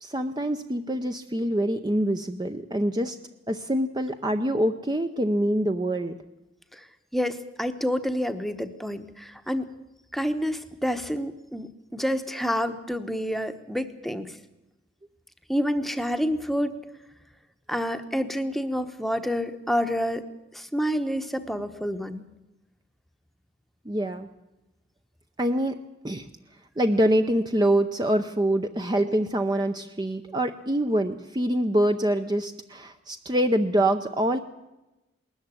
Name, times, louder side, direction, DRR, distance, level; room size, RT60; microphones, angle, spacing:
voice 1, 0.0-3.2 3.5-6.2 23.8-24.3 25.4-25.8 26.0-26.3 26.8-34.4, right 1 dB, 20° right, 7 dB, 0.7 m, -25 dB
voice 2, 7.1-9.7 10.1-14.3 15.5-16.8 17.7-20.2 20.5-22.2, equal, ahead, 8 dB, 1.0 m, -28 dB
19.5 x 14.0 x 9.7 m, 0.98 s
head